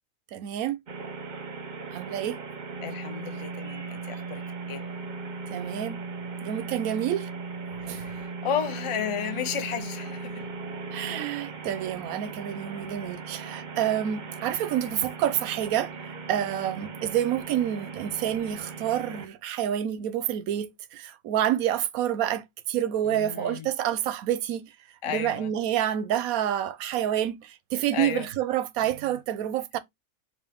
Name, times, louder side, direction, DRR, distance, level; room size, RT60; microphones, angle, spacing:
voice 1, 0.3-0.8 1.9-2.4 5.5-6.0 6.4-7.3 7.8-8.1 10.9-24.6 25.1-29.8, right 11 dB, 90° right, 1.1 m, -28 dB
sound 1, 0.9-19.3, right 4 dB, 45° right, 0.7 m, -38 dB
voice 2, 2.8-4.9 7.8-10.4 10.9-11.2 23.1-23.7 25.0-25.5 27.9-28.3, left 7 dB, 40° left, 0.4 m, -33 dB
5.6 x 2.5 x 3.4 m
omnidirectional pair, 1.4 m